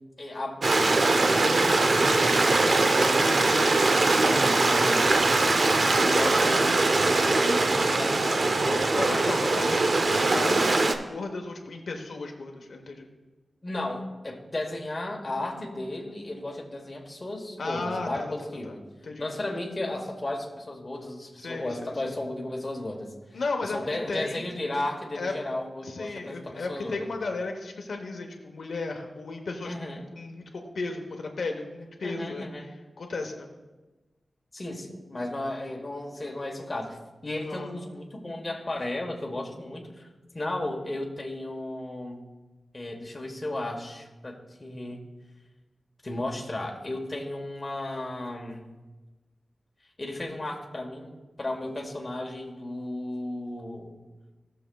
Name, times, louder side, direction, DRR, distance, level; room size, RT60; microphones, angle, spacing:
voice 1, 0.2-0.7 1.0-5.1 6.0-9.8 13.6-18.8 19.2-27.1 29.6-30.1 32.0-32.7 34.5-40.1 40.3-42.2 42.7-45.0 46.0-48.6 50.0-53.9, left 1 dB, 30° left, 0 dB, 1.2 m, -34 dB
Stream, 0.6-11.0, right 2 dB, 55° right, 0.6 m, -22 dB
voice 2, 9.0-13.1 17.6-18.3 18.6-18.7 19.0-19.5 21.4-22.1 23.3-23.8 24.1-24.5 25.2-25.3 25.8-29.8 30.1-32.5 33.0-33.5 37.5-37.7, left 3 dB, 80° left, 3 dB, 0.9 m, -35 dB
17.0 x 6.6 x 2.3 m, 1.2 s
wide cardioid pair, 125°, 0 cm